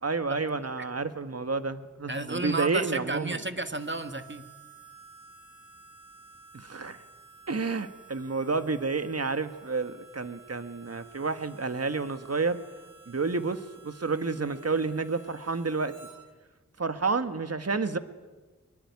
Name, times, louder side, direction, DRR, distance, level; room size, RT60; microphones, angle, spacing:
voice 1, 0.0-3.4 6.5-7.0 7.5-12.6 13.1-15.9 16.8-18.0, right 4 dB, 55° right, 10 dB, 1.7 m, -30 dB
voice 2, 2.1-4.4, right 2 dB, 40° right, 8 dB, 2.1 m, -32 dB
Harmonica, 3.7-16.2, right 4 dB, 80° right, 6.4 m, -53 dB
24.0 x 23.0 x 9.7 m, 1.2 s
wide cardioid pair, 60°, 30 cm